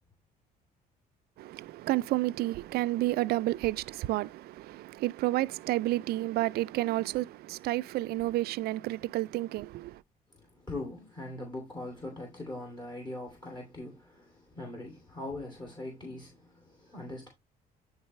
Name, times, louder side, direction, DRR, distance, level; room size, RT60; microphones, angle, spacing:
voice 1, 1.4-10.0, right 17 dB, 70° right, 0.4 m, -30 dB
voice 2, 10.3-17.3, left 2 dB, 25° left, 2.7 m, -41 dB
9.6 x 4.0 x 3.1 m
cardioid pair, 110°, 17 cm